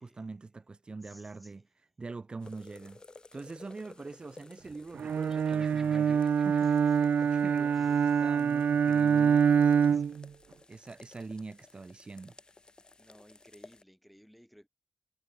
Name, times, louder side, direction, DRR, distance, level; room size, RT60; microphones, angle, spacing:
voice 1, 0.0-1.6 2.0-3.0 3.3-6.8 7.2-10.0 10.7-12.3, right 3 dB, 35° right, 4.5 m, -44 dB
voice 2, 1.0-1.7 6.6-7.3 7.7-8.3 9.2-10.3 13.0-14.7, equal, ahead, 7.1 m, -59 dB
sound 1, 2.4-13.8, left 3 dB, 30° left, 4.0 m, -56 dB
Bowed string instrument, 5.0-10.3, right 7 dB, 70° right, 0.6 m, -25 dB
Laughter, 5.3-8.2, right 2 dB, 20° right, 5.7 m, -58 dB
wide cardioid pair, 120°, 3 cm